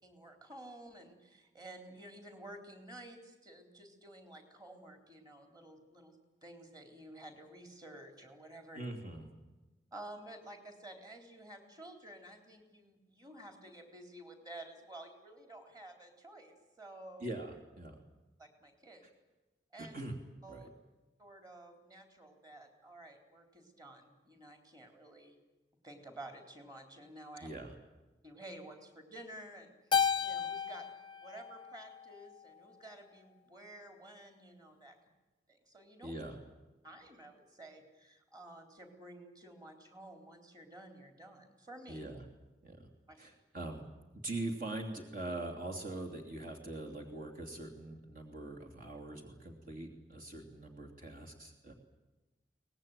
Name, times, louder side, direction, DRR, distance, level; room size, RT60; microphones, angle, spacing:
voice 1, 0.0-8.9 9.9-17.3 18.4-19.1 19.7-20.0 20.4-20.7 21.2-25.4 25.8-27.5 28.2-30.8 31.2-35.0 35.5-36.1 36.8-42.0 43.1-43.2, right 1 dB, 25° right, 5 dB, 3.9 m, -52 dB
voice 2, 8.8-9.3 17.2-18.0 19.8-20.2 20.5-20.7 27.4-27.8 36.0-36.4 41.9-42.2 42.6-42.9 43.2-43.8 44.2-51.7, right 2 dB, 55° right, 2 dB, 3.0 m, -42 dB
Keyboard (musical), 29.9-32.4, left 7 dB, 30° left, 0.7 m, -34 dB
24.0 x 19.5 x 9.2 m, 1.1 s
head